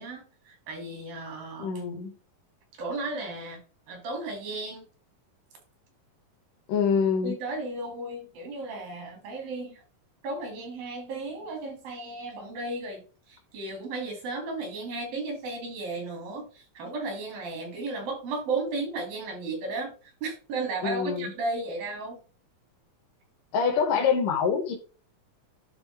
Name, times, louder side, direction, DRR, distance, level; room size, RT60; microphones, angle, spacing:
voice 1, 0.0-1.7 2.8-3.6 3.9-4.8 7.2-9.8 10.2-13.0 13.3-19.9 20.2-22.2, right 3 dB, 90° right, 2 dB, 4.0 m, -34 dB
voice 2, 1.6-2.1 6.7-7.4 20.8-21.3 23.5-24.8, left 6 dB, 75° left, 2 dB, 2.6 m, -25 dB
11.0 x 3.8 x 3.3 m, 0.37 s
omnidirectional pair, 3.9 m